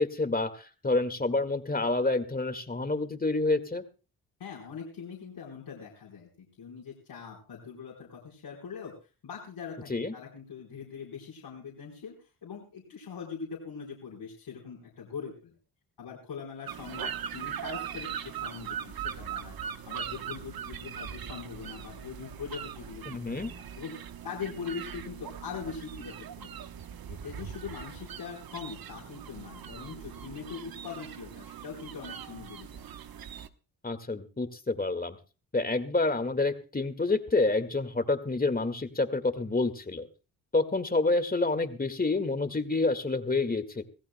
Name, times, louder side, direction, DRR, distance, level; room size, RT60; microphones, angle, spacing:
voice 1, 0.0-3.8 9.9-10.1 23.1-23.5 33.8-35.2 35.5-40.1 40.5-43.8, left 3 dB, 20° left, 9 dB, 1.9 m, -28 dB
voice 2, 4.4-8.9 9.2-15.5 16.0-19.6 19.9-23.9 24.2-26.5 27.1-32.8, left 6 dB, 70° left, -3 dB, 4.3 m, -42 dB
sound 1, 16.7-33.5, right 8 dB, 55° right, 1.1 m, -40 dB
24.5 x 15.5 x 2.2 m, 0.34 s
supercardioid pair, 55°, 41 cm